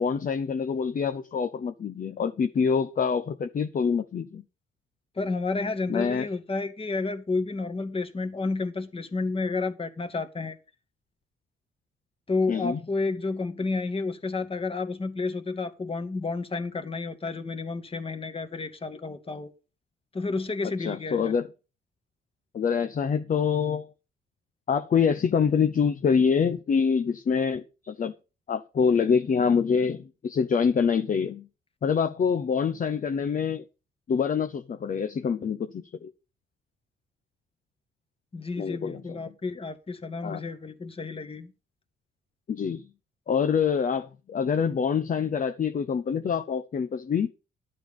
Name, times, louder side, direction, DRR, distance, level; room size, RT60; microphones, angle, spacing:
voice 1, 0.0-4.4 5.9-6.3 12.5-12.8 20.8-21.5 22.5-23.9 24.7-28.1 28.5-31.5 31.8-33.6 34.1-36.1 38.6-39.3 40.2-40.4 42.5-42.9 43.3-47.3, left 6 dB, 45° left, 1.0 m, -26 dB
voice 2, 5.2-10.6 12.3-19.5 20.1-21.3 38.3-41.5, left 3 dB, 30° left, 2.0 m, -31 dB
12.0 x 7.8 x 5.4 m
cardioid pair, 90°, 20 cm